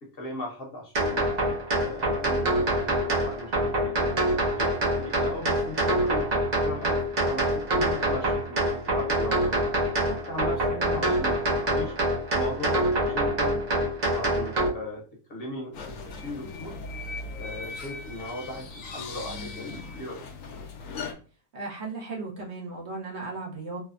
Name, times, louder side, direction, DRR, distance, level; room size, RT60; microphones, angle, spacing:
voice 1, 0.0-1.2 1.8-4.2 4.6-6.2 6.6-9.6 10.0-11.9 12.3-13.6 14.1-15.0 15.3-16.7 17.4-20.2, left 1 dB, 50° left, -1 dB, 0.9 m, -38 dB
sound 1, 0.9-14.7, right 1 dB, 40° right, 0.7 m, -25 dB
voice 2, 10.7-11.2 21.5-23.8, right 3 dB, 60° right, -2 dB, 1.0 m, -36 dB
sound 2, 15.7-21.1, left 3 dB, 80° left, 1.0 m, -38 dB
3.3 x 2.0 x 2.4 m, 0.38 s
omnidirectional pair, 1.4 m